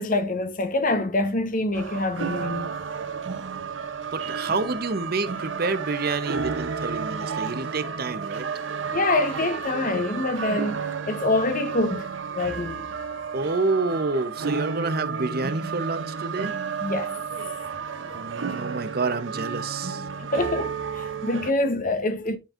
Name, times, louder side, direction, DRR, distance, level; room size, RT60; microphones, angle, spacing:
voice 1, 0.0-2.7 8.9-12.1 12.3-12.8 16.8-17.1 20.2-22.4, left 2 dB, 45° left, 1.0 m, -25 dB
sound 1, 1.7-21.5, right 5 dB, 85° right, 0.8 m, -32 dB
voice 2, 4.1-8.5 13.3-16.5 18.1-20.0, right 3 dB, 55° right, 0.8 m, -28 dB
10.5 x 4.4 x 2.5 m
head